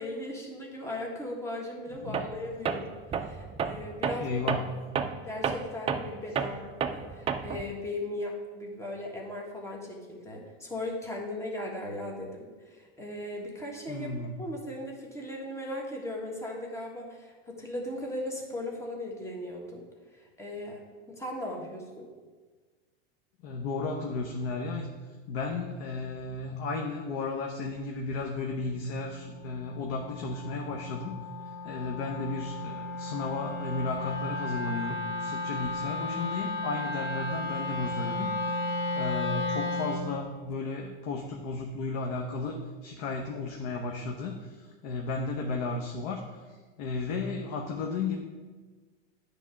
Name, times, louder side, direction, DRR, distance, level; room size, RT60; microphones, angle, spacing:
voice 1, 0.0-4.4 5.3-6.6 6.9-19.8 20.1-22.1, left 1 dB, 10° left, -1 dB, 1.4 m, -38 dB
voice 2, 2.0-2.3 4.2-4.8 6.4-6.5 13.9-14.4 23.4-31.2 31.6-46.2 46.8-48.2, left 3 dB, 60° left, 2 dB, 0.9 m, -34 dB
Tools, 2.1-2.4 2.7-7.7, right 6 dB, 20° right, 0.4 m, -31 dB
Wind instrument woodwind instrument, 28.5-40.1, left 2 dB, 40° left, 1.6 m, -34 dB
9.7 x 3.6 x 5.6 m, 1.4 s
supercardioid pair, 120°, 31 cm